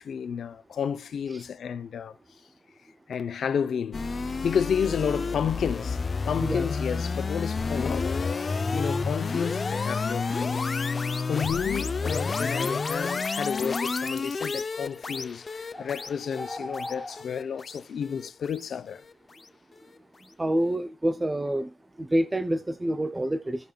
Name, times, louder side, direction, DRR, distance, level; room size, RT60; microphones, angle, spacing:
voice 1, 0.0-2.2 3.1-4.1 4.4-6.0 6.3-10.6 11.3-19.0, left 7 dB, 80° left, 0.6 m, -31 dB
sound 1, 3.9-19.1, left 4 dB, 40° left, 0.5 m, -30 dB
sound 2, 15.1-15.2 15.7-17.2, left 1 dB, 5° left, 1.4 m, -39 dB
voice 2, 20.4-21.7 22.0-23.7, right 1 dB, 15° right, 0.5 m, -27 dB
16.0 x 5.4 x 2.3 m
wide cardioid pair, 110°, 0 cm